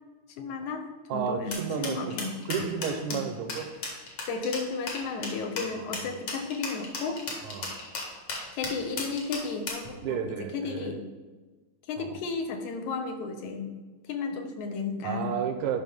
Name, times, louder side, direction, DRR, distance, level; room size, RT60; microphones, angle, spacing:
voice 1, 0.4-2.3 3.1-3.2 4.3-7.2 8.5-11.1 11.9-13.7 14.1-15.3, left 4 dB, 80° left, 5 dB, 2.3 m, -33 dB
voice 2, 1.1-2.2 2.5-3.7 5.7-5.9 7.4-7.7 10.0-11.0 12.0-12.2 15.0-15.8, right 7 dB, 80° right, 7 dB, 2.1 m, -32 dB
sound 1, 1.5-9.9, left 3 dB, 55° left, 2.3 m, -35 dB
11.5 x 5.6 x 3.6 m, 1.3 s
omnidirectional pair, 3.4 m